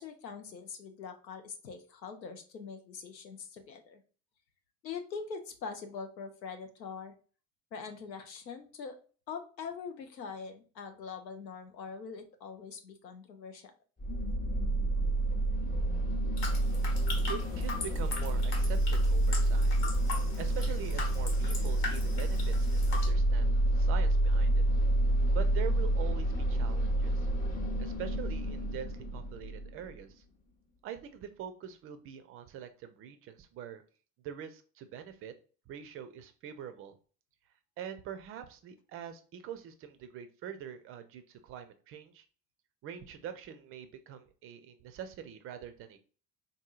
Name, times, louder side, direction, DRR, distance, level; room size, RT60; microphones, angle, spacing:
voice 1, 0.0-4.0 4.8-7.1 7.7-9.0 9.3-13.7, left 5 dB, 85° left, 6 dB, 0.6 m, -43 dB
sound 1, 14.0-29.9, right 1 dB, 15° left, 0.9 m, -29 dB
sound 2, 16.4-23.1, left 3 dB, 65° left, 1.2 m, -40 dB
voice 2, 17.3-19.7 20.4-24.6 25.3-27.3 27.8-30.2 30.8-33.8 34.2-35.3 35.7-36.9 37.8-42.2 42.8-46.0, right 9 dB, 30° right, 10 dB, 0.4 m, -44 dB
3.8 x 2.6 x 2.3 m, 0.38 s
figure-of-eight pair, 60°, 50 cm